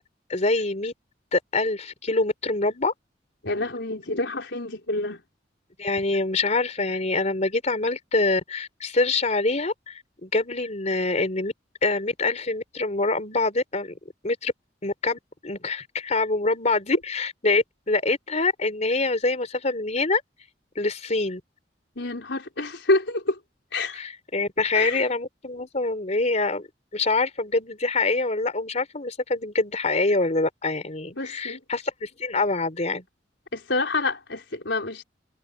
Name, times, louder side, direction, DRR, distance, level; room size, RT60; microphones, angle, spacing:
voice 1, 0.3-0.9 1.3-2.9 5.8-11.5 11.8-14.0 14.2-14.5 14.8-20.2 20.8-21.4 23.9-26.7 26.9-33.0, left 3 dB, 40° left, 3.7 m, -25 dB
voice 2, 3.4-5.2 22.0-23.4 23.7-24.0 24.7-25.1 31.1-31.6 33.5-35.0, left 2 dB, 80° left, 4.6 m, -27 dB
head